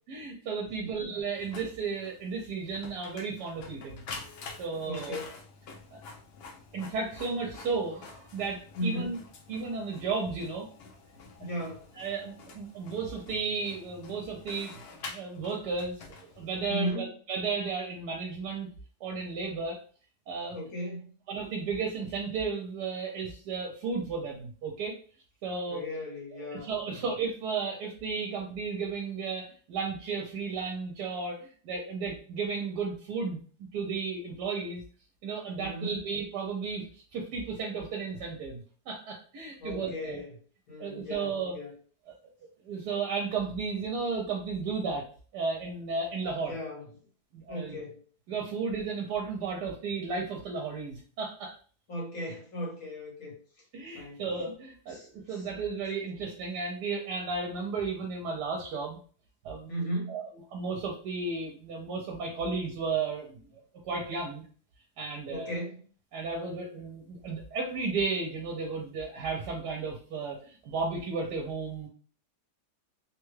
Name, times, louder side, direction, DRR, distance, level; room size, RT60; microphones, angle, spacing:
voice 1, 0.1-4.0 4.6-5.2 5.9-6.0 6.7-9.2 9.5-10.7 12.0-18.7 19.0-19.8 20.3-20.6 21.3-25.0 25.4-25.8 26.5-34.8 35.2-40.2 40.8-41.6 42.1-42.2 42.6-45.0 45.3-46.5 47.3-47.8 48.3-51.5 53.7-55.0 55.3-59.0 59.4-59.7 60.1-60.2 60.5-63.4 63.8-64.4 65.0-65.6 66.1-71.9, right 4 dB, 85° right, 0 dB, 1.2 m, -34 dB
Printer, 1.4-16.7, left 4 dB, 75° left, 0.5 m, -48 dB
voice 2, 4.8-5.4 8.7-9.2 11.4-11.9 16.7-17.1 20.5-21.1 25.7-27.1 35.6-35.9 39.6-40.4 40.7-41.7 46.4-46.9 47.5-48.0 51.9-53.3 53.9-54.2 54.9-55.5 59.7-60.2 65.3-65.8, equal, 60° left, -3 dB, 1.6 m, -36 dB
3.3 x 2.2 x 3.1 m, 0.42 s
omnidirectional pair, 1.7 m